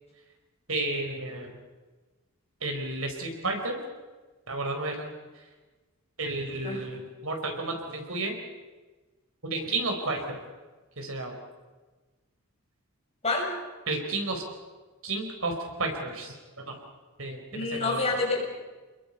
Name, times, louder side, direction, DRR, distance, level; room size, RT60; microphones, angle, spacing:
voice 1, 0.7-1.5 2.6-3.8 4.5-5.1 6.2-8.4 9.4-10.4 11.0-11.3 13.9-14.4 15.0-16.3 16.7-16.8 17.2-18.0, right 2 dB, 70° right, 3 dB, 4.4 m, -32 dB
voice 2, 17.5-18.5, left 3 dB, 30° left, -2 dB, 6.7 m, -27 dB
29.5 x 21.5 x 5.5 m, 1.3 s
head